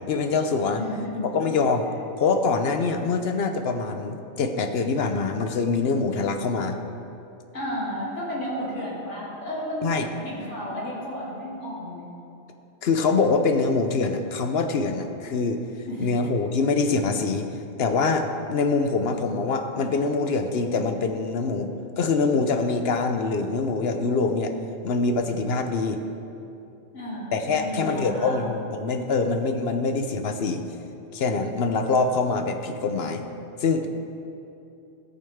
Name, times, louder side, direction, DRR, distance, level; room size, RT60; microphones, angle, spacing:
voice 1, 0.1-0.8 1.2-1.8 2.2-6.8 9.8-10.1 12.8-15.6 16.0-17.5 17.8-24.5 24.8-26.0 27.3-30.6 31.1-33.2 33.6-33.9, left 4 dB, 60° left, 6 dB, 0.9 m, -24 dB
voice 2, 0.7-1.3 7.5-9.9 10.2-12.1 15.8-16.4 26.9-28.4, equal, 85° left, -7 dB, 3.1 m, -32 dB
14.0 x 8.6 x 3.6 m, 2.7 s
omnidirectional pair, 1.2 m